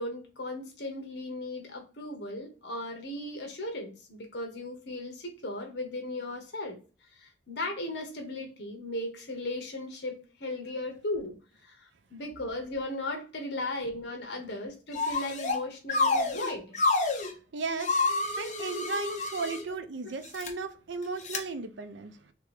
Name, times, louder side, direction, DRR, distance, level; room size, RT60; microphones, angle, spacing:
voice 1, 0.0-6.8 7.1-11.3 11.6-16.8, left 2 dB, 70° left, 1.0 m, -37 dB
sound 1, 14.9-15.6 15.9-17.3 17.8-19.6 20.2-20.5 21.2-21.4, left 3 dB, 40° left, 0.8 m, -28 dB
voice 2, 17.5-18.1 18.4-22.3, right 4 dB, 85° right, 0.6 m, -35 dB
3.4 x 2.9 x 4.7 m
head